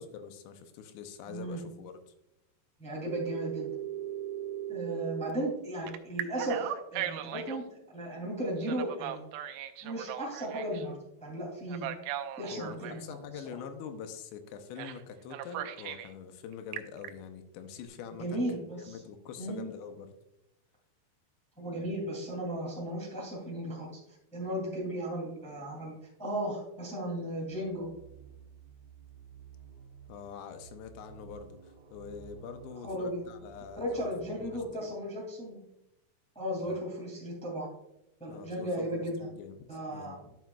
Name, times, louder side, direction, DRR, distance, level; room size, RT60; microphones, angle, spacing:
voice 1, 0.0-1.9 12.5-18.4 18.8-20.1 30.1-34.9 36.6-36.8 38.3-39.6 39.9-40.4, left 7 dB, 80° left, 8 dB, 2.8 m, -44 dB
voice 2, 1.2-1.6 2.8-3.7 4.7-7.6 7.9-9.2 9.8-11.9 12.4-13.2 18.2-19.0 19.4-19.7 21.6-24.0 24.3-27.8 32.8-33.2 33.8-35.6 36.3-37.7 38.2-39.2 39.7-40.2, right 1 dB, 5° left, -3 dB, 0.6 m, -35 dB
Telephone, 3.1-5.3 5.9-7.6 8.6-10.9 11.7-13.0 14.8-15.0 15.3-16.1 16.5-17.1, right 12 dB, 90° right, 3.0 m, -38 dB
sound 1, 27.5-34.7, right 7 dB, 75° right, 1.9 m, -53 dB
12.0 x 7.0 x 2.3 m, 0.85 s
omnidirectional pair, 5.3 m